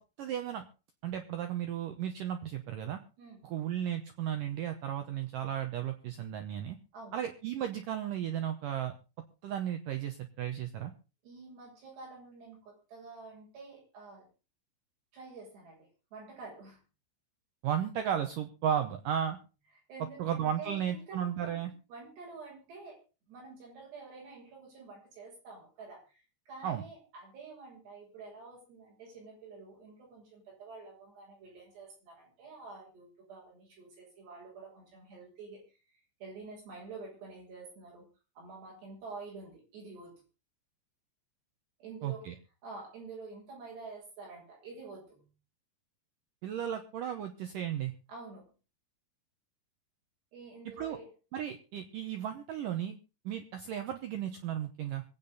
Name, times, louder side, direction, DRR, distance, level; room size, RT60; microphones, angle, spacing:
voice 1, 0.2-0.6 1.0-3.0 3.4-6.8 7.1-8.9 9.4-10.9 17.6-19.4 20.2-21.7 26.6-26.8 42.0-42.4 46.4-47.9 50.8-51.0 51.3-53.0 53.3-55.0, right 10 dB, 90° right, 7 dB, 1.9 m, -34 dB
voice 2, 11.2-14.3 15.1-16.8 19.9-23.0 23.3-38.1 38.4-40.2 41.8-42.3 42.6-45.3 48.1-48.5 50.3-51.1, right 4 dB, 65° right, -3 dB, 9.6 m, -48 dB
24.5 x 8.9 x 4.1 m, 0.33 s
omnidirectional pair, 5.3 m